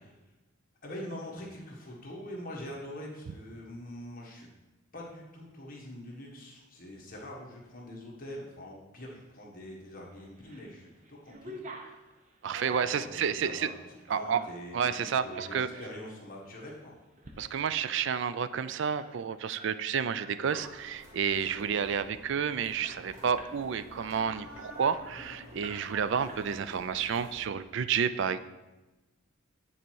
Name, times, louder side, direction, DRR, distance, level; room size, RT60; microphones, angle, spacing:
voice 1, 0.8-4.5 4.9-11.6 12.6-13.7 14.1-16.9, left 1 dB, 40° left, -2 dB, 1.5 m, -44 dB
sound 1, 10.2-10.7 11.0-14.6 15.1-16.1 16.5-16.7 17.1-17.4 17.7-17.8 18.0-20.4 20.7-20.9 21.2-21.7 22.1-22.2 22.5-23.6 24.0-25.1 25.6-26.0 26.3-26.9, right 2 dB, 35° right, 0.8 m, -47 dB
voice 2, 12.4-13.7 14.1-14.4 14.7-15.7 17.4-28.4, right 7 dB, 55° right, 13 dB, 0.3 m, -30 dB
sound 2, 20.4-27.4, equal, 15° right, 2.4 m, -49 dB
9.4 x 4.3 x 4.6 m, 1.1 s
head